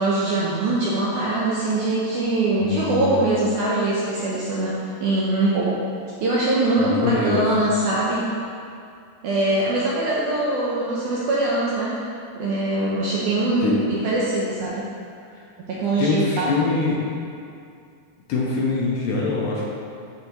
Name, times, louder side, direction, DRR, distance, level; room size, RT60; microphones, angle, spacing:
voice 1, 0.0-5.8 6.2-8.3 9.2-12.1 12.3-14.9 15.7-16.5, right 2 dB, 75° right, -6 dB, 1.9 m, -22 dB
voice 2, 2.6-3.1 6.8-7.5 13.6-13.8 16.0-17.0 18.3-19.7, left 4 dB, 70° left, -4 dB, 2.3 m, -23 dB
12.5 x 4.3 x 3.0 m, 2.4 s
omnidirectional pair, 4.4 m